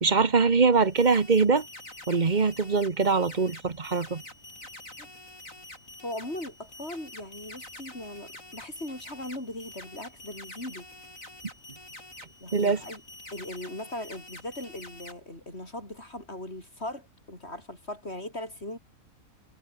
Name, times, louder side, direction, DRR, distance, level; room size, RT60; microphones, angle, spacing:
voice 1, 0.0-1.6 2.1-4.2 12.5-12.8, right 4 dB, 30° right, 1.4 m, -23 dB
sound 1, 0.7-15.1, left 1 dB, 60° left, 8.3 m, -46 dB
voice 2, 6.0-10.9 12.4-13.0 13.3-18.8, left 1 dB, 45° left, 8.3 m, -39 dB
omnidirectional pair, 1.6 m